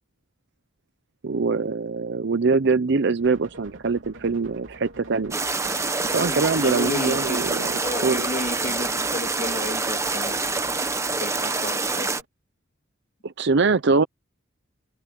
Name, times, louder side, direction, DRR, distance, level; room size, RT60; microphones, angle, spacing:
voice 1, 1.2-5.4 6.1-8.2 13.2-14.0, right 4 dB, 60° right, 0.6 m, -23 dB
sound 1, 3.2-12.3, right 1 dB, 75° right, 3.3 m, -45 dB
sound 2, 5.3-12.2, right 3 dB, 15° right, 1.1 m, -26 dB
voice 2, 6.1-7.5 7.8-10.4 11.2-12.1, left 2 dB, 40° left, 2.3 m, -32 dB
open air
head